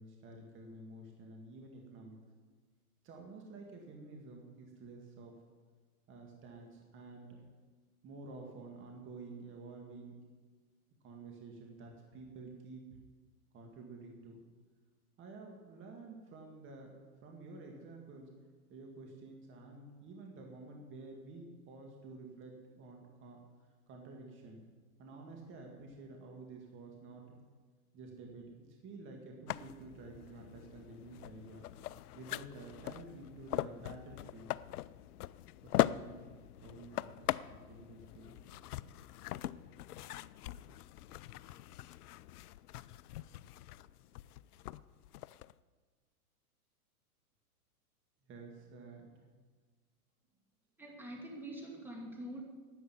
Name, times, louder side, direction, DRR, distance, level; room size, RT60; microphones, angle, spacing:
voice 1, 0.0-2.2 3.0-5.3 6.1-7.4 8.0-10.2 11.0-12.9 13.5-14.4 15.2-16.9 17.2-18.3 18.7-23.4 23.9-24.6 25.0-27.4 27.9-28.5 28.8-31.7 32.1-34.5 35.6-36.3 36.6-38.3 43.1-43.2 48.3-49.1, right 3 dB, 25° right, 1 dB, 2.1 m, -50 dB
sound 1, 29.5-45.5, left 14 dB, 75° left, 0.6 m, -41 dB
voice 2, 50.8-52.4, right 1 dB, 5° right, 0 dB, 2.4 m, -45 dB
11.0 x 8.2 x 9.4 m, 1.4 s
hypercardioid pair, 130°, 45 cm